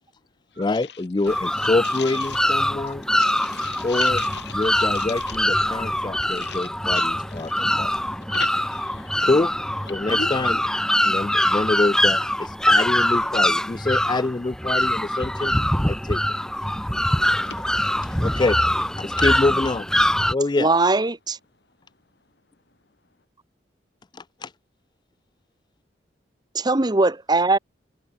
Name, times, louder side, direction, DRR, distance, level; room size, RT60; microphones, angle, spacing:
voice 1, 0.6-3.0 3.8-4.2 4.5-7.9 9.2-9.5 9.9-10.6 11.0-15.5 15.8-16.2 18.2-18.6 19.0-19.9 20.3-20.7 24.4-24.5, left 2 dB, 25° left, 0.4 m, -25 dB
sound 1, 1.3-20.3, left 1 dB, 5° left, 1.5 m, -23 dB
voice 2, 1.9-2.4 3.2-5.1 6.3-6.6 6.9-7.1 7.4-7.5 8.3-9.2 10.1-10.3, left 6 dB, 70° left, 2.3 m, -37 dB
voice 3, 20.6-21.4 26.5-27.6, right 3 dB, 25° right, 0.9 m, -20 dB
head